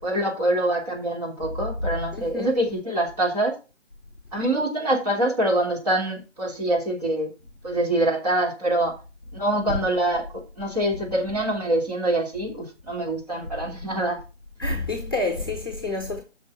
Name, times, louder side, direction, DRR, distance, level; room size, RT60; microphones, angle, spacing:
voice 1, 0.0-3.5 4.3-7.3 7.6-8.9 9.3-14.2, right 1 dB, 35° right, 3.2 m, -25 dB
voice 2, 2.1-2.5 9.7-9.8 14.6-16.2, left 2 dB, 20° left, 1.0 m, -28 dB
8.7 x 6.1 x 5.5 m
figure-of-eight pair, 160°, 36 cm